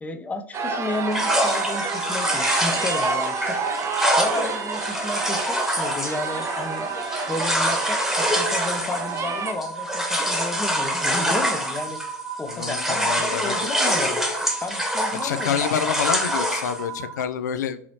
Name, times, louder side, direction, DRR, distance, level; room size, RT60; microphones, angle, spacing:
voice 1, 0.0-3.6 4.2-7.0 7.3-12.0 12.4-14.2 14.6-15.8, left 2 dB, 15° left, 7 dB, 0.6 m, -32 dB
sound 1, 0.5-9.5, right 4 dB, 30° right, 0.6 m, -29 dB
sound 2, 1.1-12.2 12.5-16.8, equal, 5° right, 1.1 m, -25 dB
sound 3, 1.2-17.3, right 5 dB, 85° right, 0.6 m, -36 dB
voice 2, 12.5-13.5 13.9-14.0 15.2-17.8, left 8 dB, 80° left, 11 dB, 0.4 m, -27 dB
4.7 x 2.9 x 2.7 m, 0.64 s
hypercardioid pair, 85°, 9 cm